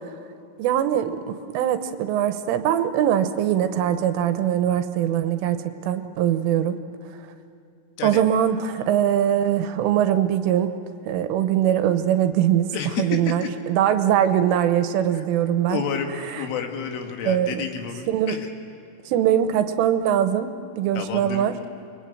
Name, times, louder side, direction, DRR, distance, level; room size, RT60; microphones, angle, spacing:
voice 1, 0.6-6.8 8.0-10.7 11.1-12.7 13.0-15.8 16.3-16.4 17.3-17.5 18.1-18.4 19.1-20.5 20.8-21.5, right 10 dB, 80° right, 10 dB, 3.4 m, -22 dB
voice 2, 12.7-13.5 15.1-15.2 15.7-18.5 21.0-21.5, left 7 dB, 75° left, 4 dB, 4.2 m, -30 dB
29.5 x 22.5 x 9.1 m, 2.8 s
omnidirectional pair, 6.0 m